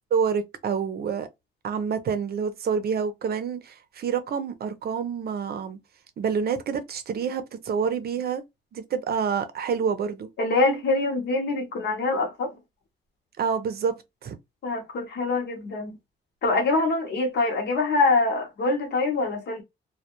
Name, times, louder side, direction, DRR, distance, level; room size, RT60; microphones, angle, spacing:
voice 1, 0.1-1.3 1.6-5.8 6.2-8.4 8.7-10.3 13.4-13.9 14.2-14.4, right 6 dB, 50° right, 0.6 m, -27 dB
voice 2, 10.4-12.5 14.6-15.9 16.4-19.6, left 3 dB, 55° left, 0.9 m, -24 dB
2.2 x 2.1 x 2.9 m
cardioid pair, 90°, 20 cm